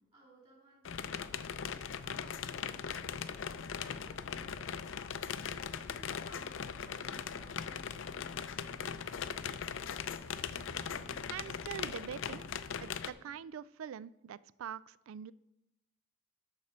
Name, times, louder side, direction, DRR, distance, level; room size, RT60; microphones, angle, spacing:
voice 1, 0.1-2.6 2.9-4.8 5.3-8.4, right 1 dB, 30° right, -3 dB, 3.2 m, -60 dB
sound 1, 0.8-13.1, left 7 dB, 75° left, 0.4 m, -40 dB
sound 2, 7.1-13.4, right 1 dB, 55° right, 1.9 m, -60 dB
voice 2, 11.3-12.4 12.8-15.3, right 8 dB, 85° right, 20 dB, 0.3 m, -44 dB
11.5 x 4.2 x 6.6 m, 0.89 s
head